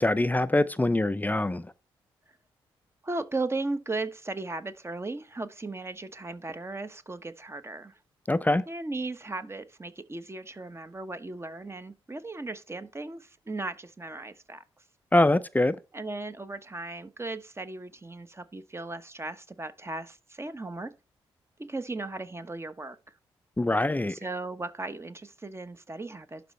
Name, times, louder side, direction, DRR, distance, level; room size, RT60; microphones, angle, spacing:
voice 1, 0.0-1.6 8.3-8.6 15.1-15.8 23.6-24.1, left 1 dB, 15° left, 0.5 m, -24 dB
voice 2, 3.0-8.0 8.7-14.6 15.9-20.9 21.6-23.0 24.1-26.4, right 2 dB, 25° right, 1.0 m, -36 dB
11.5 x 4.1 x 3.2 m
hypercardioid pair, 40°, 11 cm